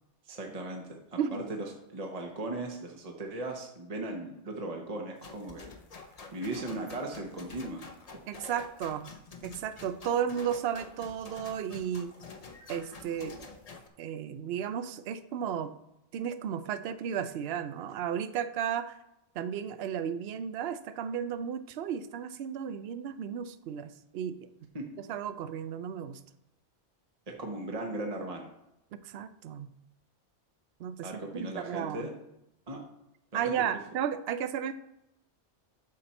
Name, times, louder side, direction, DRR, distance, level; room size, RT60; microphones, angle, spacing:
voice 1, 0.2-1.2 1.5-1.7 1.9-5.7 6.3-7.8 24.7-24.8 27.3-28.5 31.0-32.1 32.7-32.8 33.3-33.6, right 2 dB, 35° right, 1 dB, 1.0 m, -37 dB
sound 1, 5.2-13.9, left 4 dB, 35° left, 0.8 m, -48 dB
voice 2, 8.3-9.1 9.4-12.1 12.7-13.5 14.0-15.7 16.1-19.0 19.3-24.5 25.0-26.2 28.9-29.7 30.8-32.1 33.3-34.7, right 8 dB, 65° right, 12 dB, 0.8 m, -34 dB
13.0 x 4.3 x 4.3 m, 0.86 s
omnidirectional pair, 1.2 m